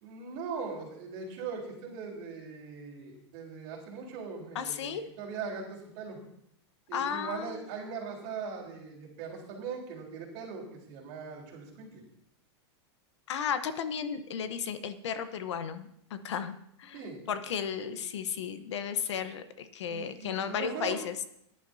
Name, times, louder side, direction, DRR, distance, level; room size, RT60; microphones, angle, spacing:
voice 1, 0.0-6.2 6.9-12.0 16.9-17.2 17.8-17.9 19.9-21.0, right 5 dB, 35° right, -2 dB, 3.7 m, -40 dB
voice 2, 4.5-5.0 6.9-7.6 13.3-16.5 16.8-17.0 17.3-21.2, left 7 dB, 85° left, 11 dB, 1.0 m, -34 dB
18.0 x 11.0 x 2.7 m, 0.74 s
supercardioid pair, 175°, 14 cm